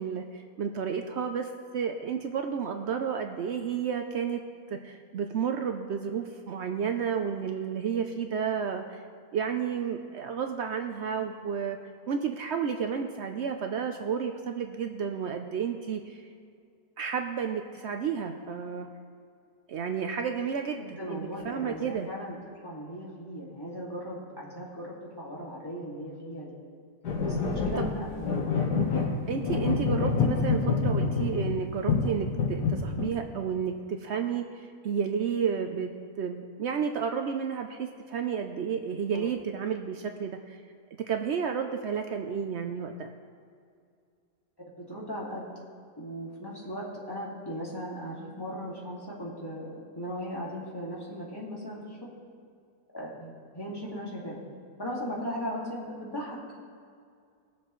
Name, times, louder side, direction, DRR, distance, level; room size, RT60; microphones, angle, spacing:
voice 1, 0.0-4.4 4.7-9.0 9.3-11.8 12.1-16.2 17.0-18.9 19.7-22.1 27.8-27.9 29.3-35.9 36.2-40.6 41.1-43.1, right 7 dB, 90° right, 5 dB, 0.6 m, -31 dB
voice 2, 20.8-26.6 27.2-28.4 39.1-39.3 44.8-45.5 46.0-51.8 52.9-54.4 54.8-56.4, equal, 15° left, -6 dB, 2.0 m, -38 dB
sound 1, 27.0-31.6 31.9-33.1, left 4 dB, 70° left, 1.8 m, -27 dB
21.5 x 7.2 x 3.1 m, 2.3 s
omnidirectional pair, 1.8 m